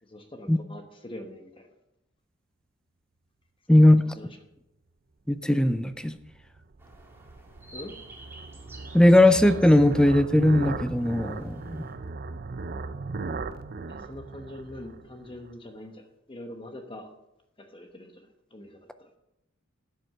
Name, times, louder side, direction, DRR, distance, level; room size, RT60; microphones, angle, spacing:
voice 1, 0.0-1.7 3.7-4.4 7.7-7.9 13.9-17.1 17.6-19.1, left 1 dB, 25° left, 5 dB, 1.0 m, -43 dB
voice 2, 5.3-6.1 8.9-11.8, left 1 dB, 5° left, 11 dB, 0.4 m, -19 dB
sound 1, 5.9-15.5, right 3 dB, 45° right, 0.5 m, -38 dB
sound 2, 6.8-11.9, right 2 dB, 10° right, 2.0 m, -51 dB
12.0 x 7.9 x 5.7 m, 0.87 s
head